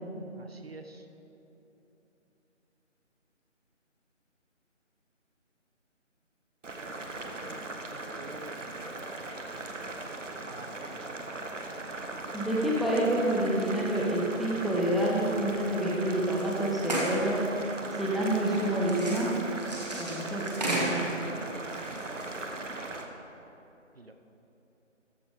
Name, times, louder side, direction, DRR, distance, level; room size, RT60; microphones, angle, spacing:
voice 1, 0.4-1.1 7.4-7.6 7.9-8.9 10.5-11.2 12.6-13.2 22.1-22.5 23.9-24.1, right 2 dB, 50° right, 6 dB, 0.8 m, -45 dB
Boiling, 6.6-23.0, right 2 dB, 70° right, 1.1 m, -39 dB
voice 2, 12.3-17.4 17.9-19.3 20.0-21.0, right 1 dB, ahead, -5 dB, 0.6 m, -28 dB
sound 1, 16.4-16.5 16.8-17.3 18.3-21.1 21.7-22.4, right 1 dB, 35° right, 1.4 m, -34 dB
14.0 x 5.5 x 4.9 m, 3.0 s
figure-of-eight pair, 170°, 38 cm